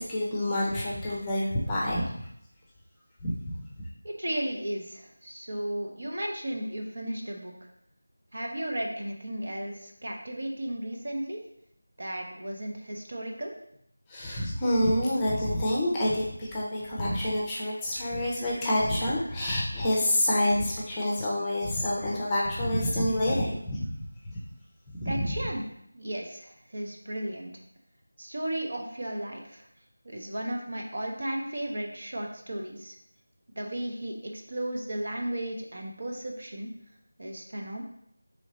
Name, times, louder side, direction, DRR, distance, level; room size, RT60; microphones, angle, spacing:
voice 1, 0.0-2.1 3.2-3.4 3.8-3.9 14.1-23.9 24.9-25.3, left 1 dB, 10° left, -5 dB, 0.6 m, -27 dB
voice 2, 4.0-7.5 8.3-11.4 12.0-13.5 25.0-25.7 25.9-27.5 28.2-29.7 30.0-32.9 33.5-36.7 37.2-37.8, right 1 dB, 60° right, 1 dB, 0.9 m, -34 dB
3.8 x 3.3 x 4.0 m, 0.74 s
figure-of-eight pair, 170°, 0 cm